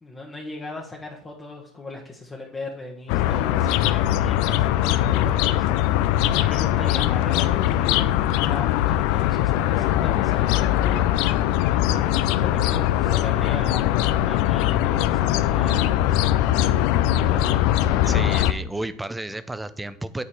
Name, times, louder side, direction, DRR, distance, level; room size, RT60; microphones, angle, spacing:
voice 1, 0.0-5.7 5.9-16.3 17.1-17.7, left 2 dB, 20° left, -1 dB, 1.2 m, -38 dB
sound 1, 3.1-18.5, left 13 dB, 65° left, 0.4 m, -21 dB
voice 2, 18.0-20.2, right 1 dB, 10° right, 13 dB, 0.5 m, -32 dB
8.7 x 4.2 x 4.8 m, 0.62 s
hypercardioid pair, 85°, 0 cm